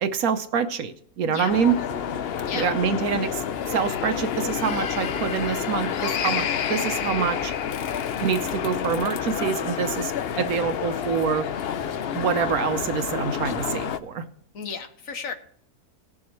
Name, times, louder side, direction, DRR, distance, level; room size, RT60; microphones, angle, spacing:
voice 1, 0.0-1.8 2.5-7.5 8.2-10.1 10.4-11.5 12.1-14.2, right 6 dB, 65° right, 10 dB, 1.1 m, -26 dB
sound 1, 1.5-14.0, left 8 dB, 80° left, 0.5 m, -29 dB
voice 2, 14.5-15.3, left 5 dB, 60° left, 8 dB, 1.2 m, -33 dB
19.5 x 7.2 x 3.1 m, 0.65 s
omnidirectional pair, 1.8 m